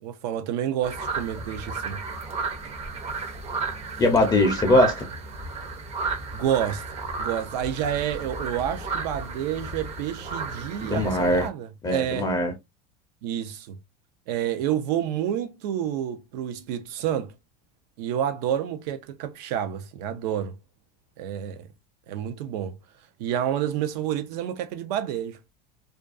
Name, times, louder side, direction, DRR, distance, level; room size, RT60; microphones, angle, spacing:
voice 1, 0.0-2.0 6.3-6.8 7.2-12.3 13.2-13.8 14.3-17.3 18.0-20.5 21.2-21.7 22.1-22.8 23.2-25.4, right 10 dB, 75° right, 0.6 m, -29 dB
sound 1, 0.8-11.5, right 4 dB, 30° right, 0.6 m, -33 dB
voice 2, 4.0-5.1 10.9-11.5 11.8-12.5, left 1 dB, 20° left, 0.5 m, -21 dB
2.5 x 2.2 x 2.4 m
supercardioid pair, 115°, 21 cm